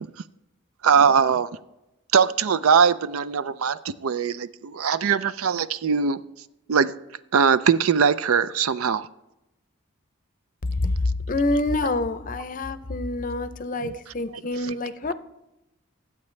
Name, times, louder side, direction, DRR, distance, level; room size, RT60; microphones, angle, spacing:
voice 1, 0.8-1.5 2.1-6.2 6.7-6.9 7.3-9.1 13.7-14.7, right 6 dB, 90° right, 0.5 m, -21 dB
voice 2, 11.3-15.1, left 2 dB, 40° left, 0.6 m, -27 dB
19.5 x 8.4 x 3.2 m
head